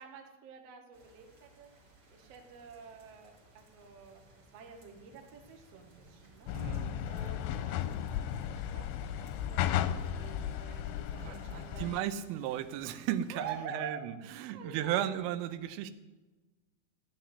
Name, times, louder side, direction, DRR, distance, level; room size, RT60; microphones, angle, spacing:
voice 1, 0.0-1.7 2.1-6.5 7.1-12.0 13.3-14.0 14.5-15.0, right 6 dB, 60° right, 3 dB, 1.6 m, -48 dB
sound 1, 0.9-13.6, right 2 dB, 35° right, 2.9 m, -58 dB
Bridge Traffic Budapest, 6.5-12.0, left 10 dB, 85° left, 2.7 m, -35 dB
voice 2, 6.5-7.0 11.2-15.9, right 11 dB, 85° right, 12 dB, 3.4 m, -35 dB
13.5 x 7.6 x 9.7 m, 1.2 s
omnidirectional pair, 5.6 m